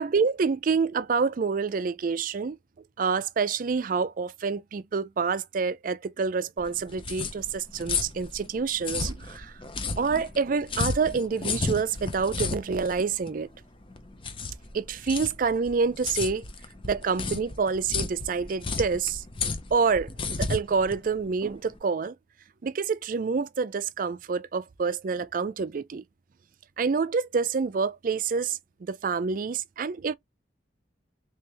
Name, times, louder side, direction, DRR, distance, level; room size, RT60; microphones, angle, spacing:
voice 1, 0.0-2.6 3.0-9.5 10.0-13.5 14.7-16.4 16.8-19.2 19.7-20.1 20.4-22.1 22.6-26.0 26.8-30.1, right 5 dB, 50° right, 0.4 m, -27 dB
sound 1, 6.6-21.8, left 4 dB, 30° left, 0.6 m, -33 dB
3.4 x 3.3 x 2.9 m
head